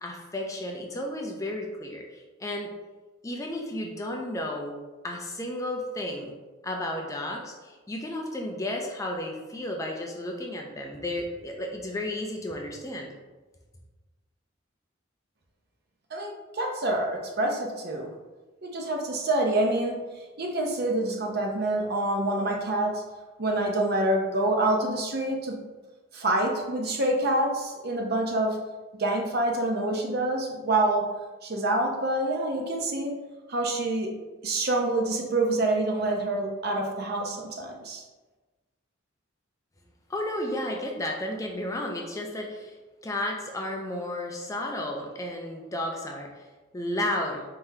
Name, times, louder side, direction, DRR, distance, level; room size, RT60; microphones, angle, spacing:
voice 1, 0.0-2.7 3.2-4.8 5.0-6.3 6.6-13.1 40.1-42.8 43.0-46.5 46.7-47.4, left 1 dB, 15° left, 1 dB, 0.4 m, -33 dB
voice 2, 16.1-18.1 18.6-20.0 20.4-23.0 23.4-25.6 26.1-28.6 29.0-31.1 31.4-33.1 33.5-34.1 34.4-38.0, right 2 dB, 50° right, 1 dB, 0.7 m, -26 dB
4.4 x 3.8 x 2.7 m, 1.2 s
head